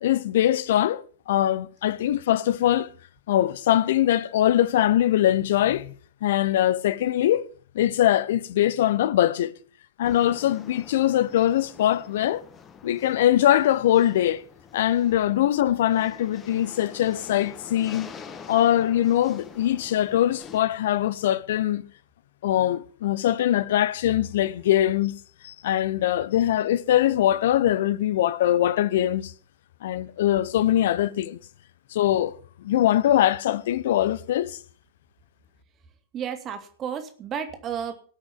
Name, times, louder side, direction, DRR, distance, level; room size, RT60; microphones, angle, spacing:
voice 1, 0.0-2.9 3.3-5.9 6.2-7.5 7.7-9.5 10.0-12.4 12.8-14.4 14.7-18.1 18.5-21.8 22.4-25.1 25.4-29.3 29.8-31.4 31.9-32.3 32.6-34.6, left 12 dB, 55° left, 0.6 m, -22 dB
sound 1, 10.0-20.6, left 6 dB, 25° left, 1.5 m, -46 dB
voice 2, 36.1-37.9, right 8 dB, 30° right, 2.4 m, -32 dB
18.0 x 6.1 x 7.0 m
figure-of-eight pair, 90°, 0 cm